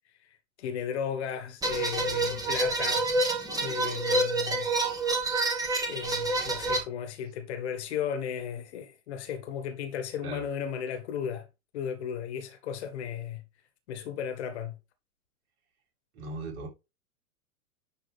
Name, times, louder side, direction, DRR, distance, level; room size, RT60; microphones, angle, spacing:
voice 1, 0.6-3.1 3.5-4.7 5.8-11.4 11.7-13.4 13.9-14.8, left 8 dB, 50° left, 1.6 m, -35 dB
sound 1, 1.6-6.8, right 2 dB, 10° right, 1.4 m, -28 dB
voice 2, 16.1-16.7, right 2 dB, 45° right, 2.8 m, -37 dB
10.0 x 3.4 x 3.3 m
figure-of-eight pair, 100°, 43 cm